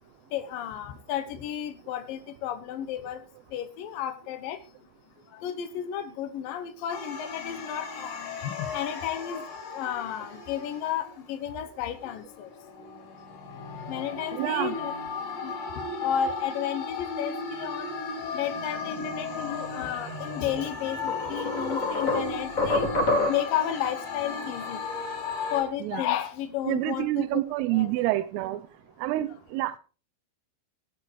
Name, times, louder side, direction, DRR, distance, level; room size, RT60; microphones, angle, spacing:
voice 1, 0.3-3.2 3.5-4.6 5.4-8.1 8.4-9.4 9.7-12.5 13.9-14.9 15.4-15.5 16.0-17.9 18.3-22.9 23.3-24.8 25.5-27.4 27.7-27.9, left 10 dB, 80° left, 2.0 m, -32 dB
sound 1, 6.9-11.3 11.9-25.6, left 4 dB, 65° left, 6.0 m, -36 dB
voice 2, 14.3-14.8 25.8-26.0 26.7-28.6 29.0-29.8, right 16 dB, 80° right, 3.4 m, -27 dB
sound 2, 20.5-20.6 21.1-23.6, left 2 dB, 25° left, 2.1 m, -27 dB
17.5 x 8.6 x 4.7 m
omnidirectional pair, 5.9 m